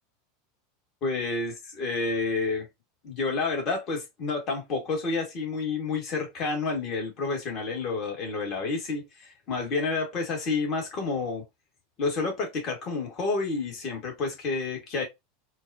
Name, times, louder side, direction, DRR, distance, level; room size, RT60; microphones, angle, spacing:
voice 1, 1.0-2.7 3.0-11.4 12.0-15.0, left 3 dB, 40° left, 1.9 m, -29 dB
4.4 x 2.4 x 2.8 m
figure-of-eight pair, 85°, 0 cm